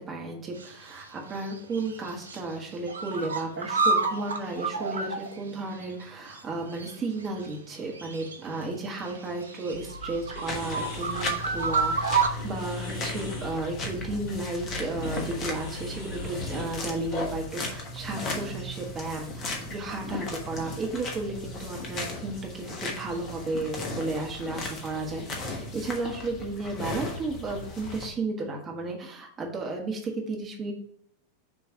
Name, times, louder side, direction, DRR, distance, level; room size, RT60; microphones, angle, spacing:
voice 1, 0.1-30.7, right 2 dB, 25° right, 0 dB, 1.6 m, -33 dB
sound 1, 0.6-1.0 1.3-2.4 2.7-6.0 6.3-6.4 6.7-8.6 9.0-12.3, right 4 dB, 75° right, 0.6 m, -30 dB
sound 2, 9.7-17.4, left 1 dB, 50° left, 2.5 m, -40 dB
sound 3, 10.5-28.1, left 2 dB, 30° left, 1.2 m, -36 dB
6.3 x 3.2 x 5.3 m, 0.65 s
figure-of-eight pair, 90°, 0 cm